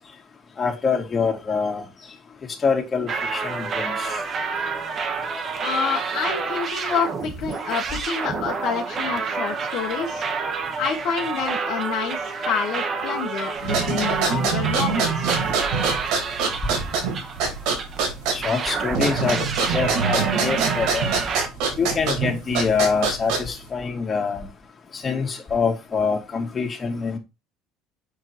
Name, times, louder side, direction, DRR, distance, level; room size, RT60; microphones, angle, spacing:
voice 1, 0.6-1.8 2.6-4.2 18.3-21.1 21.8-24.5 25.0-27.2, left 5 dB, 30° left, 2.5 m, -25 dB
sound 1, 3.1-18.0 18.4-21.5, right 5 dB, 40° right, 1.7 m, -28 dB
voice 2, 5.6-10.2 10.8-15.3, left 6 dB, 65° left, 1.7 m, -28 dB
sound 2, 13.6-23.7, right 5 dB, 75° right, 3.7 m, -25 dB
6.9 x 4.9 x 4.5 m
supercardioid pair, 110°, 0 cm